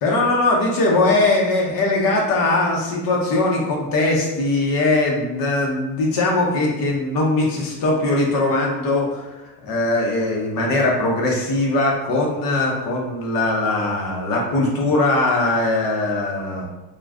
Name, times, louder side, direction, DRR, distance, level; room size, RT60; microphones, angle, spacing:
voice 1, 0.0-16.7, left 2 dB, 60° left, -1 dB, 0.8 m, -20 dB
2.4 x 2.3 x 3.3 m, 1.0 s
cardioid pair, 135°, 39 cm